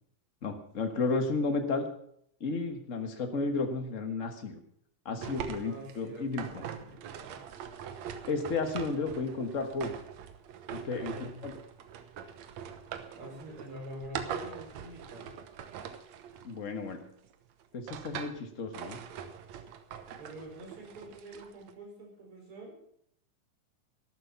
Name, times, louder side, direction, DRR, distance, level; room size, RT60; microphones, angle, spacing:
voice 1, 0.4-1.9 2.4-4.6 5.0-6.4 8.3-10.0 10.7-11.5 16.4-17.0 17.7-19.0, left 3 dB, 55° left, 5 dB, 0.8 m, -33 dB
voice 2, 5.1-7.4 10.7-11.5 13.1-15.3 20.1-22.8, equal, 40° right, 0 dB, 5.6 m, -46 dB
sound 1, 5.2-17.1 17.6-18.4 18.7-21.7, right 8 dB, 65° right, 2.0 m, -43 dB
13.0 x 12.5 x 5.8 m, 0.68 s
omnidirectional pair, 3.8 m